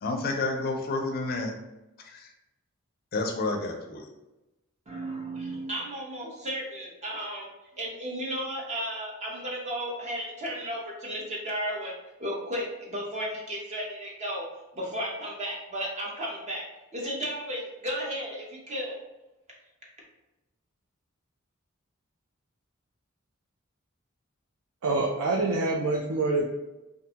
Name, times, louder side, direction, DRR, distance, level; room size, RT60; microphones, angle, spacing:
voice 1, 0.0-1.5 2.0-2.3 3.1-4.1, left 3 dB, 45° left, 3 dB, 0.4 m, -30 dB
voice 2, 4.9-7.5 7.8-11.9 12.2-14.5 14.7-16.7 16.9-19.0, equal, 35° right, -3 dB, 0.7 m, -34 dB
voice 3, 24.8-26.5, right 2 dB, 85° right, -1 dB, 0.4 m, -26 dB
2.5 x 2.2 x 2.7 m, 0.99 s
head